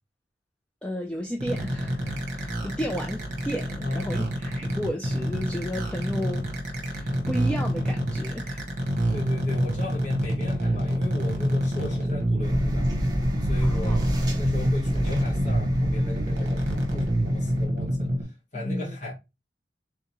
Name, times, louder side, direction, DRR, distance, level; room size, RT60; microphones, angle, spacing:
voice 1, 0.8-6.5 6.9-8.6 13.6-14.0 18.5-19.0, equal, 5° left, 0.4 m, -33 dB
sound 1, 1.4-18.2, equal, 40° right, 1.1 m, -27 dB
voice 2, 3.8-4.3 9.1-12.9 13.4-14.0 14.4-18.1 18.5-19.1, left 1 dB, 40° left, 1.7 m, -33 dB
sound 2, 12.4-17.7, equal, 20° right, 0.8 m, -31 dB
3.7 x 3.5 x 3.0 m
head